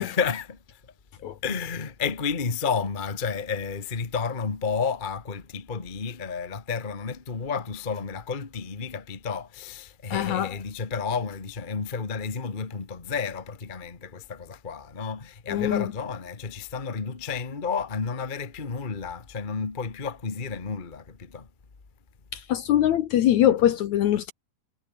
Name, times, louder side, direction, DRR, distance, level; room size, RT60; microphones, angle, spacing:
voice 1, 0.0-21.5, left 5 dB, 30° left, 0.9 m, -31 dB
voice 2, 10.1-10.5 15.5-15.9 22.3-24.3, left 11 dB, 65° left, 2.0 m, -22 dB
omnidirectional pair, 4.1 m